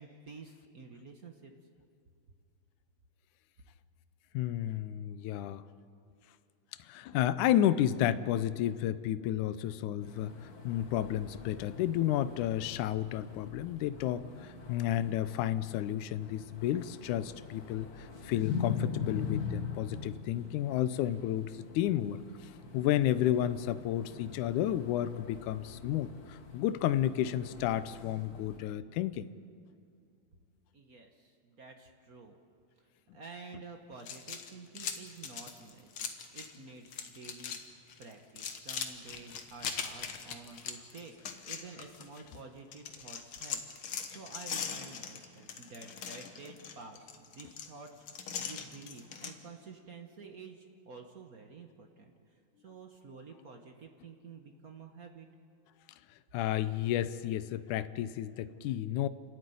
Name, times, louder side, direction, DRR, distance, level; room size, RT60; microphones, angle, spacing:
voice 1, 0.0-1.5 30.7-32.3 32.8-52.4 52.6-55.3, right 4 dB, 55° right, 3 dB, 1.0 m, -50 dB
voice 2, 4.3-5.6 6.8-10.4 10.6-22.2 22.7-29.3 56.3-59.1, left 12 dB, 85° left, 13 dB, 2.2 m, -31 dB
sound 1, 10.0-28.6, left 6 dB, 40° left, 1.7 m, -43 dB
sound 2, 34.0-36.6 36.8-37.6 37.9-42.4 42.7-49.3, left 7 dB, 55° left, 1.8 m, -41 dB
30.0 x 12.5 x 9.4 m, 2.3 s
omnidirectional pair, 3.5 m